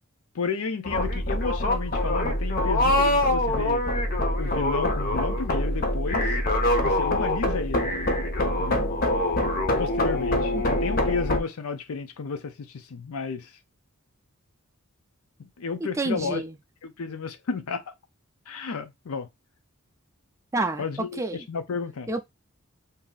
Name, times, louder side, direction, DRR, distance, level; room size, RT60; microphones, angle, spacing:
voice 1, 0.3-3.8 4.4-6.4 6.8-7.9 8.6-8.9 9.8-10.5 10.8-13.5 15.6-16.4 16.8-17.9 18.5-19.3 20.8-21.2 21.5-22.1, left 5 dB, 80° left, 0.6 m, -32 dB
sound 1, 0.8-11.4, left 1 dB, 40° left, 0.6 m, -24 dB
voice 2, 15.8-16.6 20.5-21.5 22.1-22.2, right 2 dB, 15° right, 0.3 m, -29 dB
2.7 x 2.5 x 3.8 m
head